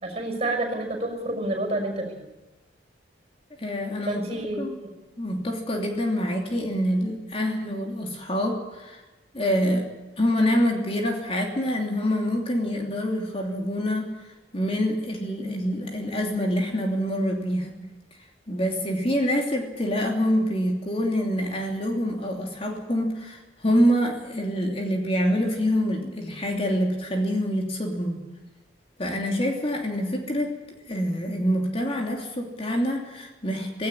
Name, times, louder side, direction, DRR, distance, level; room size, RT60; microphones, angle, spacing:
voice 1, 0.0-2.2 4.1-4.9, right 1 dB, 35° right, 4 dB, 5.6 m, -29 dB
voice 2, 3.6-4.2 4.6-4.8 5.2-9.0 9.3-9.9 10.2-17.8 18.5-28.2 29.0-30.6 30.9-33.9, equal, 30° left, 2 dB, 3.0 m, -26 dB
17.5 x 17.5 x 10.0 m, 1.1 s
head